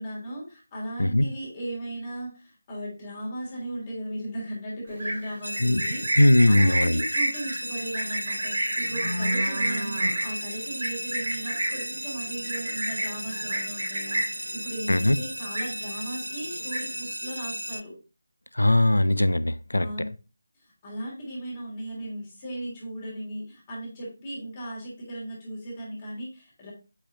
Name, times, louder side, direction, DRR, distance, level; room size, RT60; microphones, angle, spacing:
voice 1, 0.0-6.2 6.5-18.0 19.8-20.1 20.6-26.7, right 1 dB, 25° left, 3.1 m, -37 dB
Livestock farm animals working animals, 4.9-14.5 14.8-15.1 15.4-16.1 16.4-17.1, right 1 dB, 45° right, 2.9 m, -29 dB
sound 1, 5.4-17.8, equal, 80° right, 0.4 m, -35 dB
voice 2, 6.2-7.0 14.9-15.2 18.5-19.9, left 1 dB, 75° left, 0.5 m, -20 dB
8.2 x 5.5 x 2.7 m
figure-of-eight pair, 155°, 0 cm